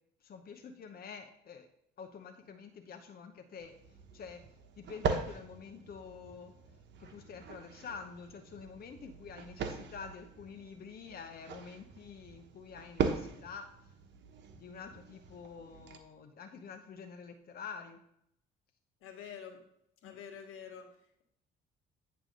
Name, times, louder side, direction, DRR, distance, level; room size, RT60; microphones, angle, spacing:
voice 1, 0.2-1.7 2.0-3.7 4.1-4.4 4.8-6.5 7.0-13.7 14.5-18.0 20.0-20.1, left 6 dB, 45° left, 5 dB, 0.9 m, -48 dB
sound 1, 3.6-16.0, right 5 dB, 60° right, 1.1 m, -40 dB
voice 2, 19.0-19.6 20.0-21.2, left 7 dB, 80° left, 4 dB, 1.5 m, -48 dB
8.9 x 3.4 x 6.5 m, 0.75 s
supercardioid pair, 75°, 21 cm